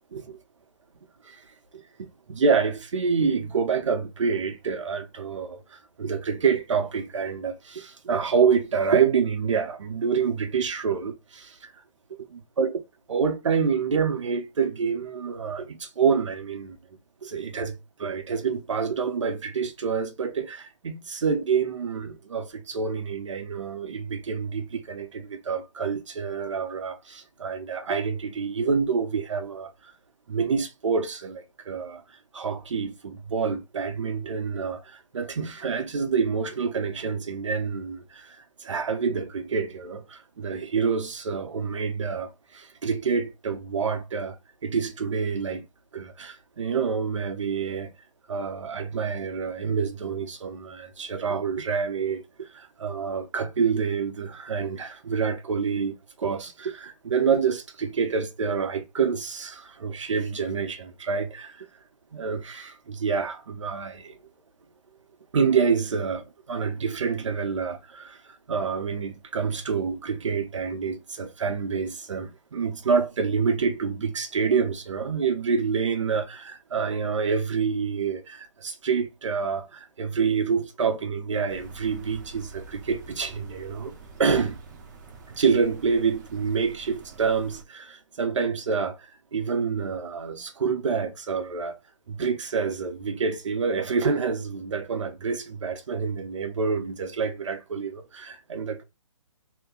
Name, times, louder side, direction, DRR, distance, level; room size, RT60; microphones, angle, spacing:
voice 1, 1.7-11.7 12.3-12.8 13.1-16.8 17.2-29.9 30.3-32.0 32.3-44.4 44.6-45.7 45.9-47.9 48.3-61.7 62.1-64.2 65.3-84.6 85.3-91.8 92.1-98.8, right 5 dB, 70° right, 0.9 m, -27 dB
sound 1, 81.5-87.6, right 4 dB, 35° right, 0.7 m, -46 dB
2.9 x 2.2 x 3.7 m
hypercardioid pair, 150°, 16 cm